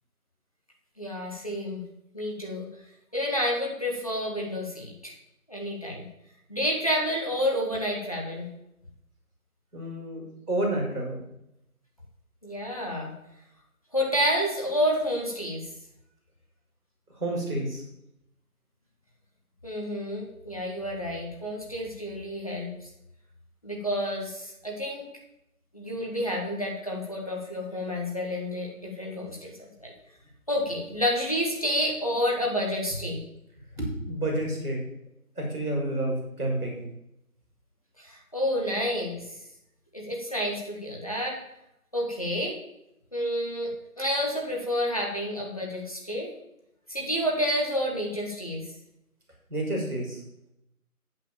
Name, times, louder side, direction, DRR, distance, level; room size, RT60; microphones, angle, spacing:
voice 1, 1.0-1.8 2.1-2.6 3.1-5.1 5.5-6.0 6.5-8.5 12.4-13.1 13.9-15.6 19.6-22.9 23.6-25.1 25.7-29.9 30.5-33.2 38.0-39.2 39.9-41.4 41.9-42.5 43.1-46.3 46.9-48.6, equal, 25° left, -2 dB, 1.6 m, -29 dB
voice 2, 9.7-11.2 17.1-17.8 33.7-34.8 35.3-36.8 49.5-50.2, right 1 dB, ahead, -27 dB, 2.4 m, -29 dB
8.4 x 8.1 x 7.2 m, 0.83 s
figure-of-eight pair, 170°, 44 cm